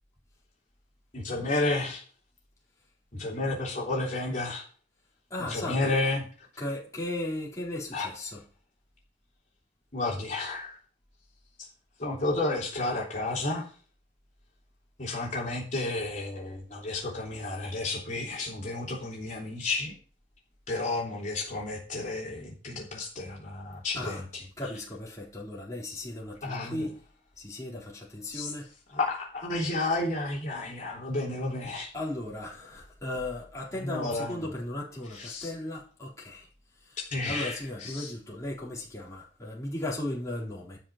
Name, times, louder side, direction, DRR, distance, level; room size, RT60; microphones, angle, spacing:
voice 1, 1.1-2.0 3.1-4.6 5.5-6.2 7.9-8.1 9.9-10.8 12.0-13.6 15.0-19.9 20.7-24.4 26.4-26.9 28.3-28.5 28.9-31.9 33.8-34.5 35.1-35.5 37.1-38.1, left 2 dB, 40° left, 3.4 m, -31 dB
voice 2, 5.3-5.9 6.6-8.4 24.0-24.2 24.6-27.0 27.4-28.7 31.9-36.5 36.9-37.0 37.3-40.8, left 1 dB, 15° left, 3.9 m, -36 dB
12.5 x 5.4 x 7.4 m
head